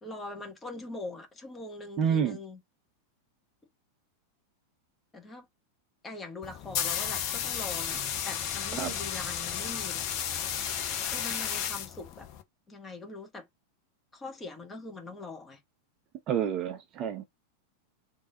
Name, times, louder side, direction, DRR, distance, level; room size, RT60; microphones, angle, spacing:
voice 1, 0.0-2.6 5.1-5.5 6.0-10.1 11.1-12.3 12.7-13.5 14.1-15.6, left 2 dB, 15° left, 1.4 m, -42 dB
voice 2, 2.0-2.4 8.8-8.9 16.3-17.2, right 8 dB, 35° right, 0.8 m, -28 dB
sound 1, 6.4-12.4, left 9 dB, 40° left, 0.8 m, -33 dB
3.5 x 2.8 x 3.8 m
figure-of-eight pair, 90°, 0 cm